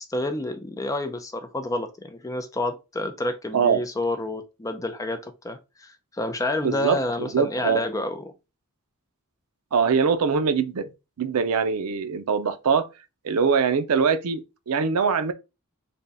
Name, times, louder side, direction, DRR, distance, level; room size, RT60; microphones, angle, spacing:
voice 1, 0.0-8.3, left 2 dB, 15° left, 0.4 m, -29 dB
voice 2, 6.6-7.8 9.7-10.9 11.2-12.9 13.2-15.3, right 6 dB, 85° right, 0.5 m, -23 dB
3.5 x 2.2 x 3.9 m
head